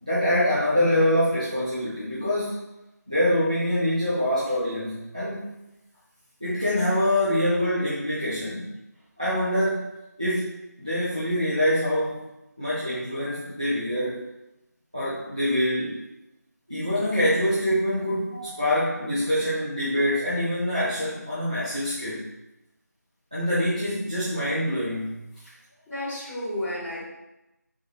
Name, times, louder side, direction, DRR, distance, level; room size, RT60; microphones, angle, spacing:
voice 1, 0.0-2.6 3.1-5.5 6.4-8.7 9.2-9.9 10.2-10.5 10.8-12.2 12.6-14.2 14.9-16.0 16.7-22.2 23.3-25.2, left 1 dB, 20° right, -10 dB, 0.4 m, -25 dB
voice 2, 18.3-18.7 25.9-27.0, left 1 dB, ahead, -31 dB, 0.9 m, -33 dB
3.0 x 2.6 x 2.9 m, 0.92 s
figure-of-eight pair, 170°, 10 cm